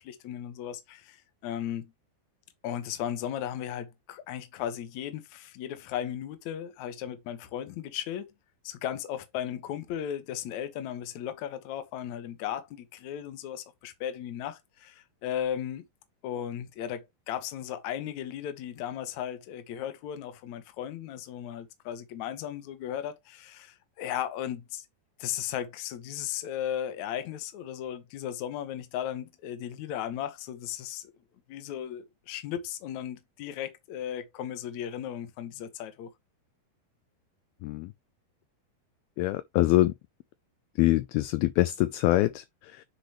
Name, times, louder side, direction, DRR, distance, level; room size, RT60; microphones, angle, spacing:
voice 1, 0.0-1.9 2.6-8.3 8.6-15.9 16.2-24.9 25.2-31.1 31.5-36.1, left 10 dB, 60° left, 2.0 m, -36 dB
voice 2, 39.2-39.9 40.8-42.8, left 17 dB, 80° left, 2.3 m, -25 dB
9.9 x 4.9 x 3.1 m
omnidirectional pair, 4.7 m